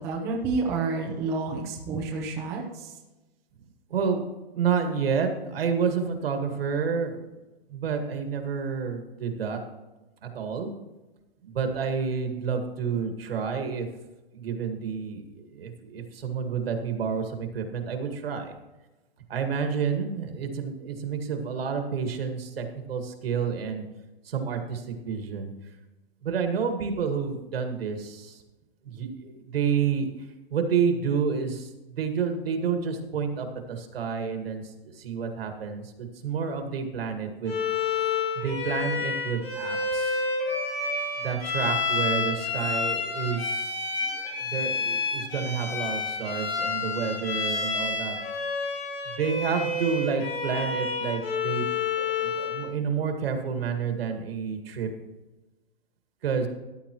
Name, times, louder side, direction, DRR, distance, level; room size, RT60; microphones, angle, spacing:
voice 1, 0.0-2.9, right 3 dB, 10° right, -3 dB, 0.7 m, -29 dB
voice 2, 3.9-4.2 4.5-7.2 7.7-9.6 10.3-10.7 11.5-13.9 14.3-15.2 15.5-18.5 19.3-23.8 24.3-25.5 26.2-28.3 28.9-30.1 30.5-31.7 32.0-34.6 35.0-35.8 36.2-37.5 38.4-40.2 41.2-43.6 44.0-44.1 44.5-48.2 49.2-51.6 52.0-54.9 56.2-56.5, right 6 dB, 70° right, 5 dB, 1.9 m, -29 dB
Bowed string instrument, 37.5-52.7, left 4 dB, 75° left, 4.0 m, -29 dB
14.5 x 10.0 x 3.1 m, 1.1 s
hypercardioid pair, 175°, 31 cm